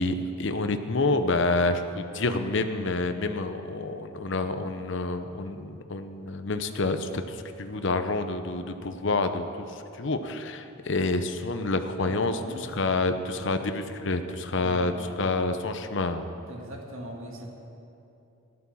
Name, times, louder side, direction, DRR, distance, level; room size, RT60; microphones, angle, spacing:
voice 1, 0.0-16.3, left 2 dB, 60° left, 8 dB, 0.8 m, -28 dB
voice 2, 11.9-13.0 13.4-13.6 14.6-15.2 16.5-17.5, right 1 dB, 70° right, 1 dB, 2.0 m, -41 dB
13.5 x 11.0 x 7.1 m, 2.8 s
head